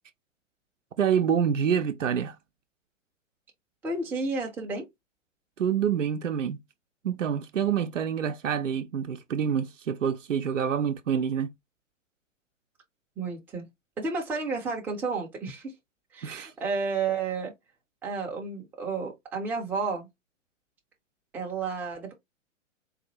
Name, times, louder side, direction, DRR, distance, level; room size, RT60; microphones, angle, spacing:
voice 1, 1.0-2.4 5.6-6.6 7.0-11.5 16.2-16.5, right 8 dB, 75° right, 0.6 m, -27 dB
voice 2, 3.8-4.8 13.2-13.7 14.0-15.7 16.1-17.5 18.0-20.1 21.3-22.1, right 4 dB, 5° right, 0.5 m, -31 dB
3.9 x 2.5 x 2.8 m
figure-of-eight pair, 110°, 38 cm